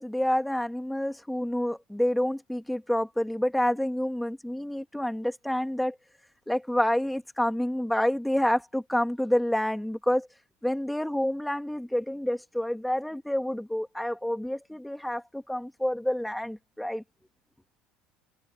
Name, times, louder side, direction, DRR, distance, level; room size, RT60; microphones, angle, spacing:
voice 1, 0.0-6.0 6.5-10.3 10.6-17.0, left 1 dB, ahead, 2.0 m, -28 dB
cardioid pair, 160°, 0 cm